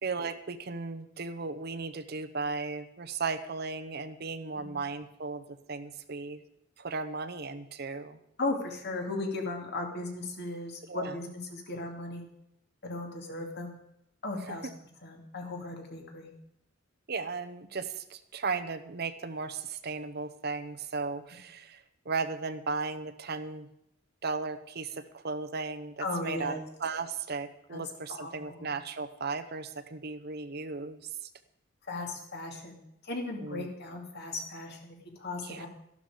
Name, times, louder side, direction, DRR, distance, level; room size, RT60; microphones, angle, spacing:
voice 1, 0.0-6.4 6.8-8.2 10.9-11.2 14.5-14.7 17.1-23.7 24.2-31.0 33.4-33.7 35.4-35.7, right 4 dB, 50° right, 11 dB, 0.8 m, -36 dB
voice 2, 8.4-12.2 12.8-13.7 14.2-14.7 15.0-16.3 26.0-26.6 27.7-27.8 28.1-28.7 31.9-32.8 33.0-35.7, left 2 dB, 55° left, 2 dB, 2.5 m, -36 dB
13.0 x 12.0 x 5.0 m, 0.78 s
head